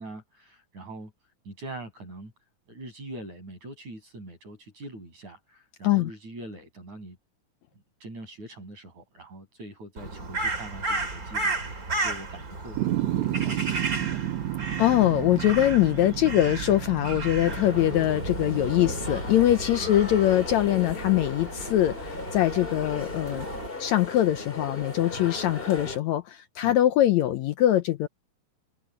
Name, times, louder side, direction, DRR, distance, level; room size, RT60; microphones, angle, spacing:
voice 1, 0.0-2.3 2.7-7.2 8.0-14.3 19.8-19.9 26.6-26.8, right 2 dB, 55° right, 8.5 m, -43 dB
Crow, 10.0-23.7, right 3 dB, 25° right, 3.3 m, -34 dB
sound 1, 12.8-19.2, right 14 dB, 75° right, 1.6 m, -32 dB
voice 2, 14.8-23.5 23.8-28.1, left 13 dB, 80° left, 1.7 m, -23 dB
sound 2, 17.5-26.0, left 3 dB, 20° left, 1.9 m, -37 dB
omnidirectional pair, 4.0 m